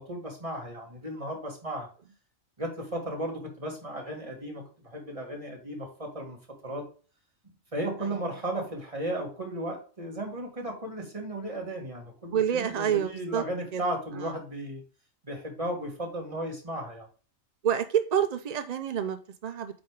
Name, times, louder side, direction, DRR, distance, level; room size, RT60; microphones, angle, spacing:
voice 1, 0.0-1.9 2.6-6.4 6.6-6.9 7.7-14.8 15.2-17.1, right 1 dB, 25° right, 0 dB, 2.2 m, -35 dB
voice 2, 12.3-13.4 13.7-13.8 14.2-14.3 17.6-19.8, right 9 dB, 60° right, 9 dB, 0.4 m, -28 dB
8.7 x 3.4 x 4.8 m, 0.37 s
omnidirectional pair, 1.4 m